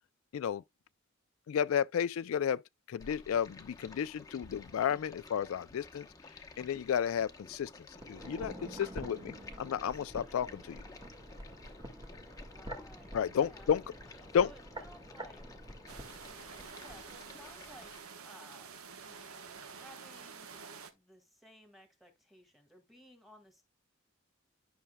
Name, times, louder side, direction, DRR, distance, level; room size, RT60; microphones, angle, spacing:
voice 1, 1.5-2.6 2.9-6.1 6.6-7.7 8.1-10.8 13.1-13.8 14.3-14.5, left 8 dB, 75° left, 0.3 m, -32 dB
Stream, 3.0-18.0, left 3 dB, 15° left, 0.8 m, -53 dB
sound 1, 7.9-17.0 17.3-17.4, right 1 dB, 20° right, 1.8 m, -48 dB
voice 2, 12.5-15.4 16.8-17.9 18.2-20.6 20.9-23.6, equal, ahead, 1.8 m, -58 dB
sound 2, 15.9-20.9, right 5 dB, 85° right, 1.1 m, -49 dB
11.5 x 5.9 x 2.2 m
head